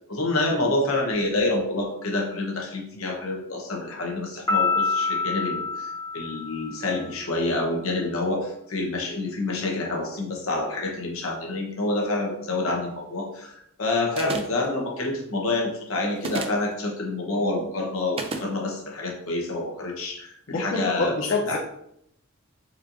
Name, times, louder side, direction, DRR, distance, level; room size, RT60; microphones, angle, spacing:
voice 1, 0.1-21.6, left 2 dB, 75° left, 0 dB, 0.9 m, -27 dB
Piano, 4.5-7.0, left 4 dB, 20° left, 0.9 m, -27 dB
sound 1, 14.2-14.7 16.2-16.7 18.2-18.5, right 3 dB, 30° right, 0.3 m, -31 dB
voice 2, 20.5-21.6, left 3 dB, 45° left, -1 dB, 0.5 m, -26 dB
4.1 x 2.8 x 2.6 m, 0.74 s
head